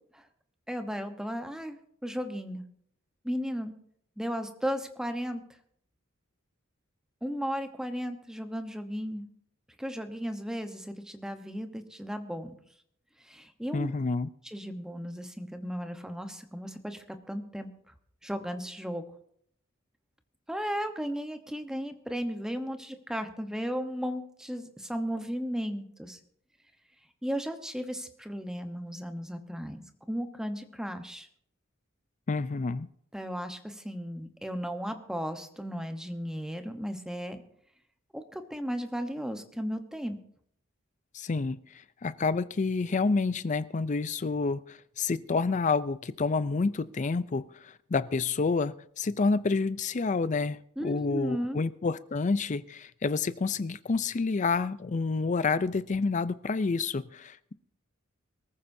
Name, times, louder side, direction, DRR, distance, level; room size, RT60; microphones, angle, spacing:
voice 1, 0.7-1.8 2.0-2.6 3.2-3.7 4.2-5.4 7.2-9.3 9.8-12.5 13.2-13.9 14.4-17.7 18.2-19.0 20.5-26.2 27.2-31.3 33.1-37.4 38.1-40.2 50.8-51.6, equal, 5° right, 7 dB, 1.0 m, -35 dB
voice 2, 13.7-14.3 32.3-32.9 41.1-41.6 42.0-57.5, left 4 dB, 35° left, 15 dB, 0.5 m, -29 dB
23.0 x 14.0 x 2.7 m, 0.67 s
head